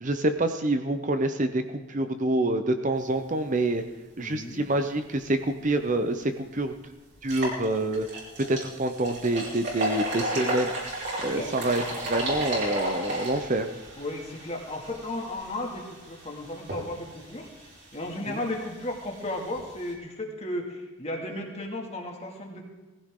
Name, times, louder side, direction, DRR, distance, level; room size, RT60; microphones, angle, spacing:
voice 1, 0.0-1.6 1.9-3.8 4.2-6.8 7.2-8.1 8.4-10.7 11.2-13.7 18.3-18.4, right 2 dB, 35° right, 7 dB, 0.7 m, -27 dB
voice 2, 4.2-4.7 11.2-11.6 14.0-17.5 17.9-22.6, left 1 dB, 30° left, 1 dB, 2.3 m, -34 dB
sound 1, 5.9-6.0 6.4-6.5 7.1-19.9, right 1 dB, 50° right, 4.9 m, -34 dB
19.0 x 15.5 x 3.8 m, 1.2 s
head